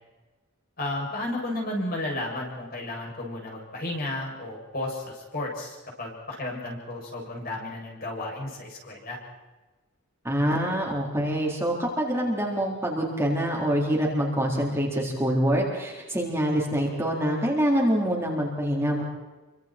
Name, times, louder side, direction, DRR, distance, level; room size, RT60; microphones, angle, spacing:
voice 1, 0.8-9.2, left 2 dB, 45° left, -2 dB, 7.6 m, -33 dB
voice 2, 10.2-19.0, equal, 10° right, -2 dB, 4.2 m, -25 dB
29.0 x 25.0 x 4.6 m, 1.2 s
head